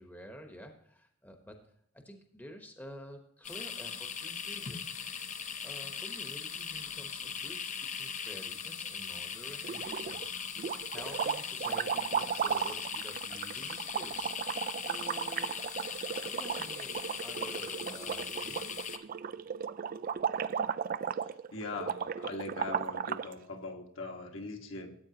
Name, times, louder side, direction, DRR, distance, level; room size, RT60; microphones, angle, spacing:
voice 1, 0.0-1.6 2.0-4.8 5.6-15.6 16.2-18.7, equal, 10° left, 4 dB, 1.0 m, -50 dB
sound 1, 3.4-19.0, left 7 dB, 35° left, 0.7 m, -39 dB
sound 2, 9.6-10.3 10.6-23.3, right 7 dB, 40° right, 0.3 m, -35 dB
voice 2, 21.5-25.0, left 2 dB, 60° left, 3 dB, 1.4 m, -41 dB
14.0 x 8.5 x 2.8 m, 0.71 s
head